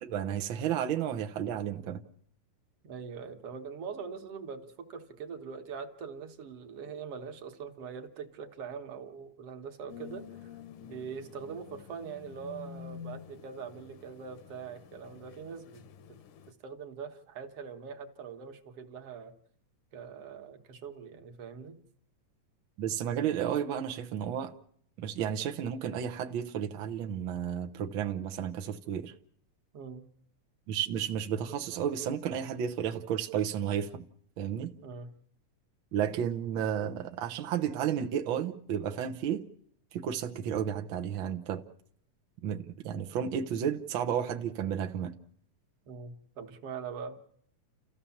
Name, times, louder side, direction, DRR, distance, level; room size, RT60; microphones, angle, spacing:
voice 1, 0.0-2.0 22.8-24.5 25.0-29.1 30.7-34.0 34.4-34.7 35.9-39.4 39.9-41.6 42.4-45.1, right 9 dB, 80° right, 1.1 m, -32 dB
voice 2, 2.8-10.5 10.8-16.2 16.5-19.3 19.9-21.8 29.7-30.1 34.8-35.1 45.9-47.2, right 6 dB, 55° right, 2.1 m, -43 dB
sound 1, 9.9-16.5, left 8 dB, 75° left, 2.5 m, -49 dB
29.5 x 14.5 x 7.2 m
omnidirectional pair, 3.6 m